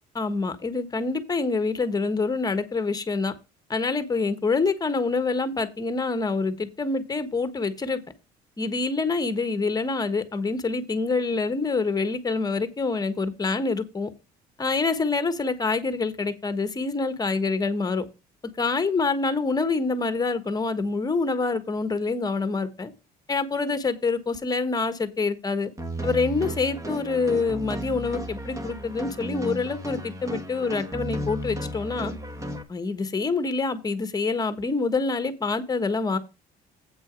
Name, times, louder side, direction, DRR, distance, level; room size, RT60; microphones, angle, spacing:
voice 1, 0.1-3.3 3.7-8.0 8.6-14.1 14.6-18.0 18.6-22.9 23.3-25.7 26.0-32.1 32.7-36.2, left 4 dB, 20° left, 1.3 m, -26 dB
sound 1, 25.8-32.6, right 1 dB, 20° right, 1.6 m, -34 dB
8.5 x 6.2 x 5.2 m
cardioid pair, 110°, 17 cm